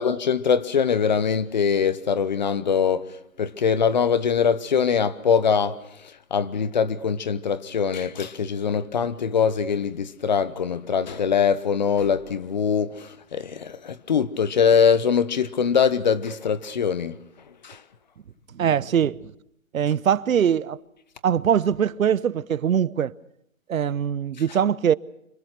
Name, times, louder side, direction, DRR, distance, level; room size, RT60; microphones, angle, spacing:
voice 1, 0.0-3.0 3.4-5.8 6.3-17.1 17.6-17.8, left 6 dB, 35° left, 0.8 m, -22 dB
voice 2, 18.5-19.2 19.7-20.8 21.2-23.1 23.7-24.9, right 8 dB, 85° right, 0.9 m, -22 dB
25.5 x 24.0 x 6.0 m
hypercardioid pair, 165°, 40 cm